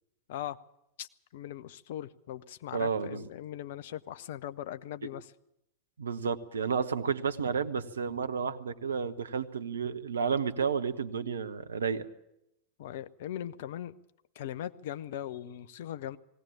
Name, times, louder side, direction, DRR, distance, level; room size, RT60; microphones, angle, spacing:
voice 1, 1.0-5.3 12.8-13.9 14.4-16.2, left 11 dB, 55° left, 0.7 m, -40 dB
voice 2, 2.7-3.3 6.0-12.1, right 6 dB, 70° right, 0.9 m, -31 dB
19.5 x 17.0 x 8.5 m
figure-of-eight pair, 90°, 0 cm